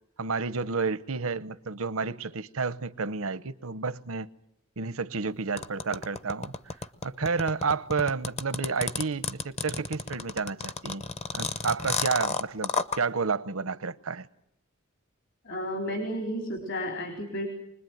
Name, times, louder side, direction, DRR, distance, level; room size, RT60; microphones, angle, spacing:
voice 1, 0.2-4.3 4.8-6.5 7.0-11.0 11.3-14.3, right 4 dB, 75° right, 0.9 m, -30 dB
sound 1, 5.6-13.0, left 4 dB, 30° left, 0.9 m, -31 dB
voice 2, 15.4-17.5, equal, 60° left, 4.1 m, -32 dB
25.0 x 20.5 x 9.3 m
head